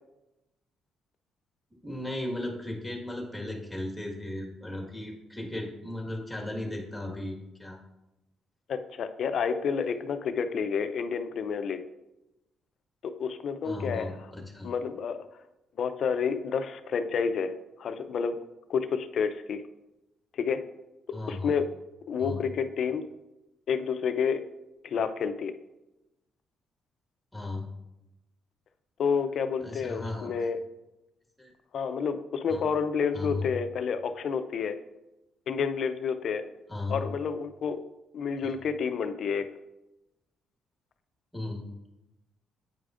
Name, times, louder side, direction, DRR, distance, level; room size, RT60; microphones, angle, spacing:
voice 1, 1.8-7.8 13.6-14.7 21.1-21.6 22.2-22.4 27.3-27.6 29.6-30.3 31.4-31.5 32.5-32.7 33.1-33.5 36.7-37.0 38.4-38.6 41.3-41.6, left 2 dB, 5° left, 0 dB, 1.6 m, -36 dB
voice 2, 8.7-11.8 13.0-14.2 14.6-15.2 15.8-17.5 17.8-18.3 18.7-19.6 20.3-20.6 21.3-21.7 22.1-23.0 23.7-24.4 24.8-25.5 29.0-30.6 31.7-34.8 35.5-36.4 36.9-37.8 38.1-39.5, left 6 dB, 60° left, 10 dB, 0.5 m, -29 dB
8.8 x 4.8 x 2.5 m, 0.95 s
cardioid pair, 90°, 0 cm